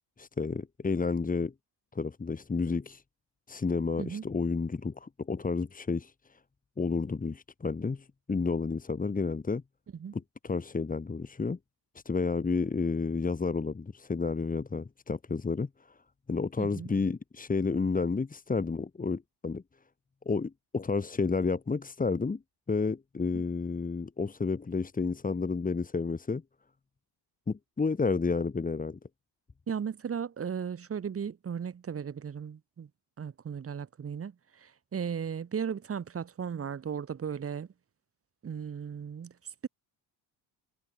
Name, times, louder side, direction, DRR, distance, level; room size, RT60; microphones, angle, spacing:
voice 1, 0.2-1.5 1.9-3.0 3.5-6.4 6.8-9.6 10.1-11.6 12.1-16.0 16.3-19.6 20.3-22.4 22.7-26.4 27.5-29.0, left 4 dB, 20° left, 3.5 m, -31 dB
voice 2, 16.6-16.9 23.3-23.4 29.7-32.9 33.2-37.7 38.4-39.3, right 7 dB, 30° right, 2.9 m, -36 dB
cardioid pair, 155°, 45 cm